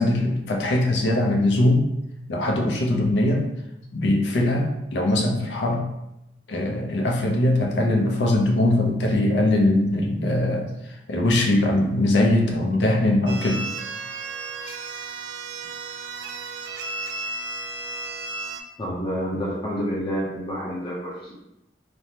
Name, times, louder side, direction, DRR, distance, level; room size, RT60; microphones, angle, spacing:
voice 1, 0.0-1.9 2.3-3.5 3.9-5.9 6.5-13.6, left 1 dB, 75° left, 1 dB, 0.5 m, -21 dB
sound 1, 13.3-18.6, right 3 dB, 90° right, 0.3 m, -33 dB
voice 2, 18.8-21.3, equal, 25° left, -7 dB, 0.6 m, -28 dB
3.2 x 2.1 x 2.7 m, 0.86 s
head